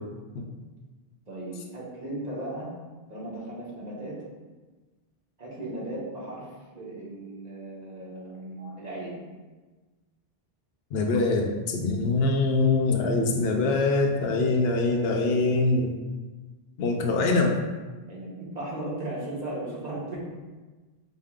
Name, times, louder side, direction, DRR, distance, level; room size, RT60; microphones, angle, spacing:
voice 1, 1.3-2.7 3.1-4.2 5.4-6.5 6.7-9.2 18.1-20.2, right 1 dB, 45° right, -6 dB, 1.1 m, -36 dB
voice 2, 10.9-16.0 16.8-17.6, left 3 dB, 75° left, 2 dB, 0.8 m, -24 dB
5.1 x 2.1 x 3.5 m, 1.3 s
omnidirectional pair, 1.0 m